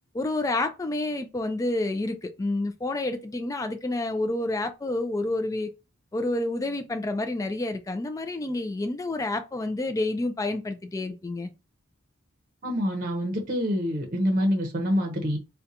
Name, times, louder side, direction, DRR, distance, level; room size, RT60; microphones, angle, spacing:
voice 1, 0.1-5.7 6.1-11.5, left 2 dB, 15° left, 0.3 m, -29 dB
voice 2, 12.6-15.4, equal, 40° right, 0.7 m, -26 dB
3.8 x 2.2 x 2.7 m
head